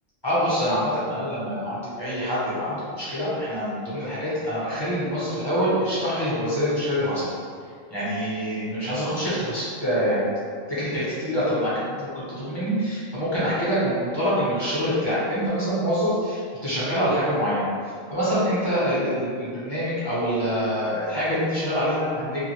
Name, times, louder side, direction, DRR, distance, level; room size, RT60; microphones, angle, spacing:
voice 1, 0.2-7.3 7.9-10.2 10.7-17.7 18.1-22.4, equal, 25° left, -11 dB, 0.8 m, -25 dB
2.5 x 2.4 x 3.1 m, 2.1 s
omnidirectional pair, 1.4 m